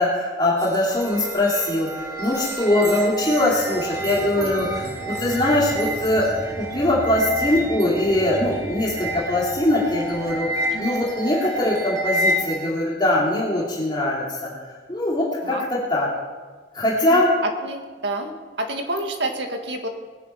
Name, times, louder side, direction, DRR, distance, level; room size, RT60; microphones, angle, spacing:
voice 1, 0.0-4.7 5.1-6.3 6.7-14.5 14.9-16.1 16.7-17.3, left 1 dB, 25° left, -5 dB, 2.7 m, -22 dB
sound 1, 0.6-12.7, right 1 dB, 20° right, 2.4 m, -30 dB
sound 2, 3.1-12.0 12.5-12.6, equal, 40° right, 5.5 m, -38 dB
voice 2, 17.6-18.3 18.6-19.9, right 2 dB, 85° right, 4 dB, 2.0 m, -29 dB
20.0 x 10.0 x 5.8 m, 1.4 s
head